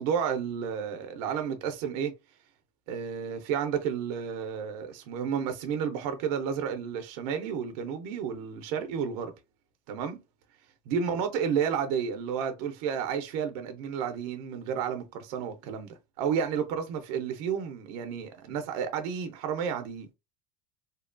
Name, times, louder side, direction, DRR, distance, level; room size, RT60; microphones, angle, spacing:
voice 1, 0.0-2.1 2.9-9.3 9.9-10.2 10.9-20.1, right 7 dB, 75° right, 0.6 m, -31 dB
2.8 x 2.2 x 2.4 m
cardioid pair, 155°, 20 cm